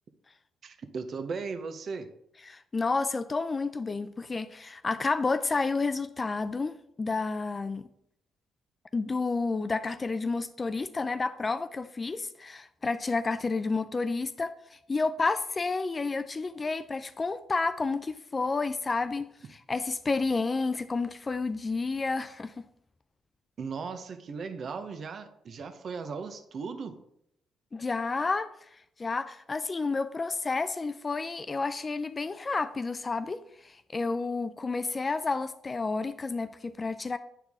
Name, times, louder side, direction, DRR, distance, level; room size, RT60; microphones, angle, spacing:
voice 1, 0.6-2.1 23.6-26.9, right 5 dB, 55° right, 9 dB, 0.8 m, -37 dB
voice 2, 2.4-6.7 7.0-7.9 8.9-22.7 27.7-37.2, left 3 dB, 30° left, 12 dB, 0.3 m, -30 dB
9.0 x 4.5 x 3.5 m, 0.74 s
cardioid pair, 90°, 0 cm